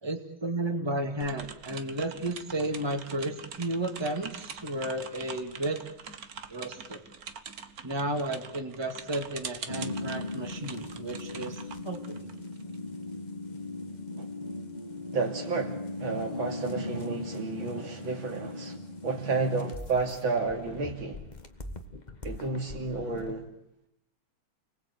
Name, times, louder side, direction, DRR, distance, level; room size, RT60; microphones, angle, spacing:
voice 1, 0.0-5.8 6.5-7.0 7.8-11.6 11.8-12.3, right 1 dB, 15° right, 2.1 m, -33 dB
sound 1, 1.2-12.8, right 6 dB, 50° right, 1.6 m, -44 dB
sound 2, 9.7-23.3, left 2 dB, 25° left, 1.4 m, -39 dB
voice 2, 15.1-18.8 19.0-21.2 22.2-23.5, right 4 dB, 80° right, 3.6 m, -31 dB
30.0 x 20.0 x 8.5 m
omnidirectional pair, 2.2 m